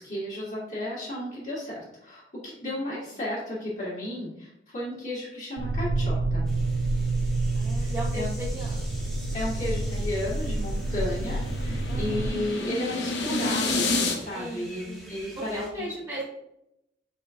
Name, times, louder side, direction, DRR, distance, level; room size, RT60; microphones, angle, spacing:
voice 1, 0.0-6.5 7.8-8.3 9.3-15.9, left 1 dB, 45° left, -8 dB, 1.7 m, -33 dB
voice 2, 2.6-3.2 7.5-8.9 11.9-12.4 14.3-16.2, equal, 20° right, -8 dB, 1.1 m, -38 dB
sound 1, 5.6-12.3, right 2 dB, 75° right, 0.4 m, -28 dB
sound 2, 6.4-15.7, equal, ahead, 1.0 m, -47 dB
sound 3, 9.9-14.2, left 3 dB, 75° left, 0.7 m, -30 dB
4.9 x 4.2 x 2.5 m, 0.83 s
head